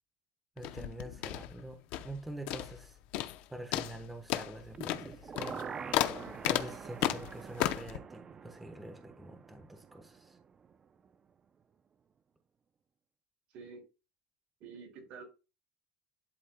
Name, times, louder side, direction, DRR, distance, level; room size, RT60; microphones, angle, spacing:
sound 1, 0.6-2.2 2.5-2.9 3.1-3.4 3.7-8.0, left 13 dB, 65° left, 0.6 m, -34 dB
voice 1, 0.6-3.0 3.5-5.8 6.4-10.4, right 1 dB, 5° right, 1.1 m, -46 dB
sound 2, 4.7-10.7 11.1-11.2, right 6 dB, 25° right, 0.5 m, -46 dB
voice 2, 13.5-13.9 14.6-15.2, right 5 dB, 55° right, 4.2 m, -48 dB
11.5 x 4.3 x 2.2 m
cardioid pair, 145°, 2 cm